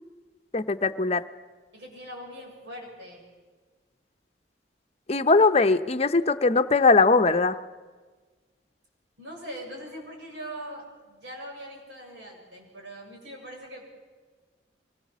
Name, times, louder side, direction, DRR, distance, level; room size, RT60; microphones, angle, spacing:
voice 1, 0.5-1.2 5.1-7.6, left 3 dB, 35° left, 9 dB, 0.8 m, -20 dB
voice 2, 1.7-3.2 9.2-13.8, equal, 85° right, -1 dB, 6.9 m, -41 dB
24.0 x 20.5 x 7.4 m, 1.4 s
head